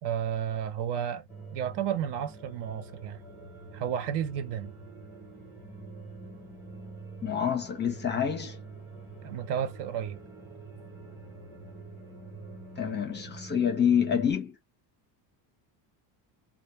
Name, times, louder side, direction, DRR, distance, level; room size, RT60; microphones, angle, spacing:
voice 1, 0.0-3.2 3.7-4.7 9.2-10.2, right 9 dB, 55° right, 0.6 m, -32 dB
sound 1, 1.3-14.3, right 3 dB, ahead, 0.9 m, -45 dB
voice 2, 7.2-8.6 12.8-14.6, left 8 dB, 20° left, 0.6 m, -27 dB
2.2 x 2.1 x 3.1 m
cardioid pair, 140°, 49 cm